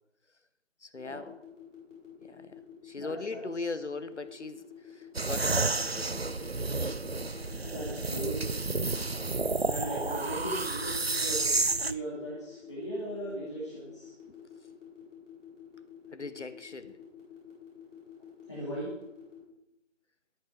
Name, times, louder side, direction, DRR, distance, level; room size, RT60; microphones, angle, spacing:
voice 1, 0.8-1.3 2.2-2.5 2.8-6.2 14.3-14.4 16.1-17.0, left 3 dB, 65° left, 1.1 m, -39 dB
sound 1, 1.1-19.4, left 9 dB, 5° right, 3.6 m, -50 dB
voice 2, 3.0-3.4 7.5-8.4 9.7-11.6 11.8-14.1 18.5-18.9, right 1 dB, 20° left, 2.3 m, -38 dB
sound 2, 5.1-11.9, right 3 dB, 55° right, 0.5 m, -31 dB
12.5 x 11.0 x 3.9 m
figure-of-eight pair, 170°, 38 cm